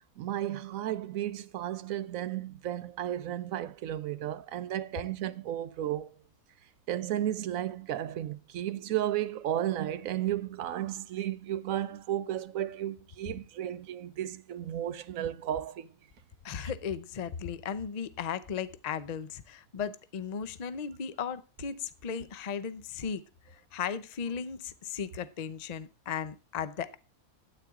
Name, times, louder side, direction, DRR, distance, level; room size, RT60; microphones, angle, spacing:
voice 1, 0.2-6.2 6.9-15.9 16.6-16.7, right 12 dB, 65° right, 1.0 m, -33 dB
voice 2, 16.4-23.2 23.7-27.0, left 7 dB, 40° left, 0.5 m, -36 dB
12.5 x 9.1 x 3.6 m
omnidirectional pair, 1.6 m